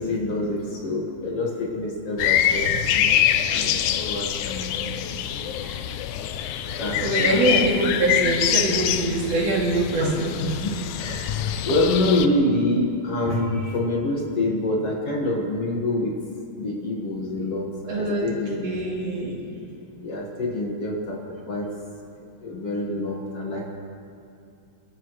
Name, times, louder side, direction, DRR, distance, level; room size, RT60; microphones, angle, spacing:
voice 1, 0.0-2.7 2.9-4.9 5.3-5.8 6.8-7.5 10.0-10.1 10.4-16.1 16.6-18.8 20.0-21.2 21.5-21.7 22.4-23.8, left 2 dB, 55° left, -2 dB, 2.5 m, -26 dB
sound 1, 2.2-12.3, left 10 dB, 85° left, 2.1 m, -25 dB
voice 2, 2.6-2.9 3.7-3.9 5.6-5.9 6.7-10.3 17.9-18.3 18.6-19.4, right 2 dB, 60° right, -4 dB, 3.6 m, -24 dB
28.0 x 12.5 x 3.2 m, 2.5 s
omnidirectional pair, 3.5 m